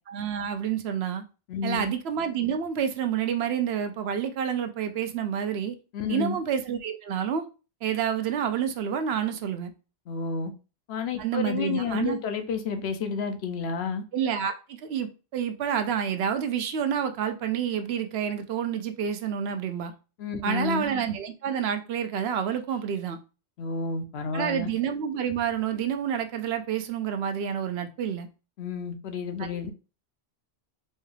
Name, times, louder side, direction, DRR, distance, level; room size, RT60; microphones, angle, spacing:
voice 1, 0.1-1.2 1.6-5.7 6.1-7.5 7.8-9.7 11.2-12.2 14.1-19.9 20.4-23.2 24.3-28.3, right 8 dB, 75° right, 0.8 m, -28 dB
voice 2, 1.5-1.9 5.9-6.4 10.1-10.5 10.9-14.0 20.2-20.9 23.6-24.7 28.6-29.7, left 5 dB, 75° left, 0.8 m, -30 dB
4.3 x 2.3 x 3.2 m
omnidirectional pair, 1.1 m